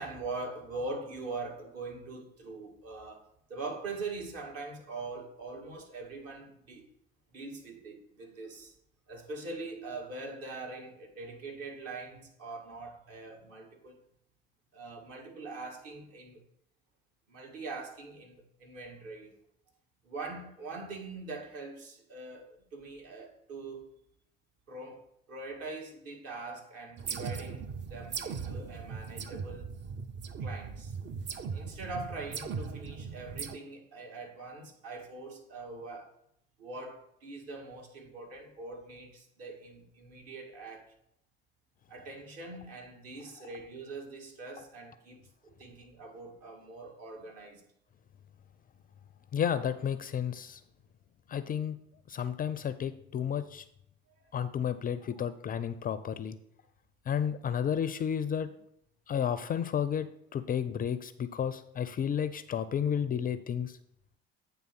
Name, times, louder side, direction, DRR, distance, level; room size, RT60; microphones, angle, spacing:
voice 1, 0.0-6.8 7.3-8.7 9.1-14.0 14.7-16.4 17.3-19.3 20.0-23.9 24.7-25.0 25.3-29.7 30.4-30.9 31.5-36.1 36.6-40.9 41.9-47.6 54.2-54.3 55.1-55.2, right 3 dB, 55° right, 2.0 m, -43 dB
sound 1, 27.0-33.6, right 5 dB, 35° right, 0.7 m, -39 dB
voice 2, 49.3-50.6 51.3-51.8 52.1-53.6 54.3-56.4 57.1-58.5 59.1-60.1 60.3-63.8, left 8 dB, 30° left, 0.4 m, -32 dB
8.6 x 3.4 x 5.9 m
figure-of-eight pair, 60°, 30 cm